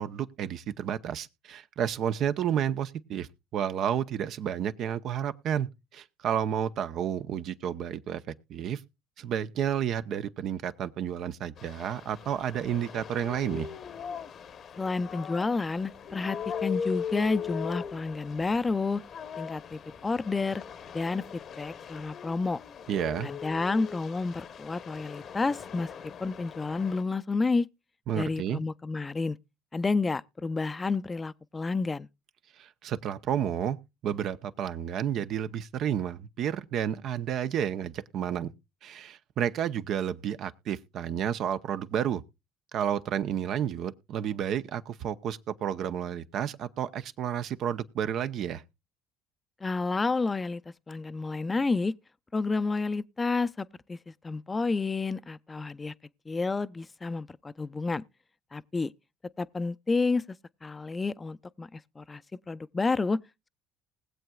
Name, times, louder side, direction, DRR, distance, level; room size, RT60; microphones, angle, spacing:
voice 1, 0.0-8.8 9.2-13.7 22.9-23.3 28.1-28.6 32.6-33.8 34.0-38.5 38.8-42.2 42.7-48.6, right 9 dB, 60° right, 0.8 m, -31 dB
sound 1, 11.6-27.0, left 7 dB, 50° left, 0.9 m, -40 dB
voice 2, 14.8-19.0 19.4-20.6 20.9-22.6 23.2-25.9 26.2-27.7 28.2-29.4 29.7-32.1 49.6-50.6 50.9-51.9 52.3-54.0 54.2-55.9 56.3-58.0 58.5-58.9 59.4-60.2 60.6-62.2 62.5-63.2, left 3 dB, 25° left, 0.5 m, -30 dB
20.5 x 7.8 x 2.3 m
supercardioid pair, 75°, 0 cm